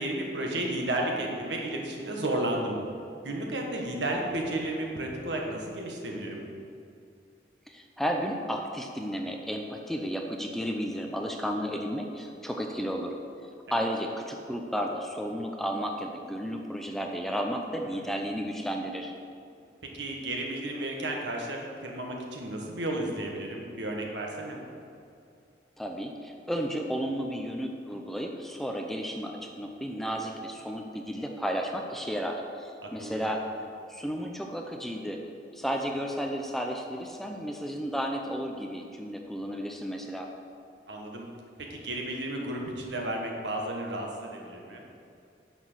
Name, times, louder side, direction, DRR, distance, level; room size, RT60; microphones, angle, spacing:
voice 1, 0.0-2.8 3.2-6.5 13.7-13.8 17.7-18.1 19.9-24.6 32.8-33.4 40.9-41.3 41.6-44.8, right 1 dB, 80° right, 0 dB, 1.6 m, -33 dB
voice 2, 7.7-13.1 13.7-19.1 25.8-33.4 33.9-35.2 35.5-40.3, equal, ahead, 2 dB, 0.6 m, -33 dB
9.6 x 6.1 x 6.2 m, 2.4 s
head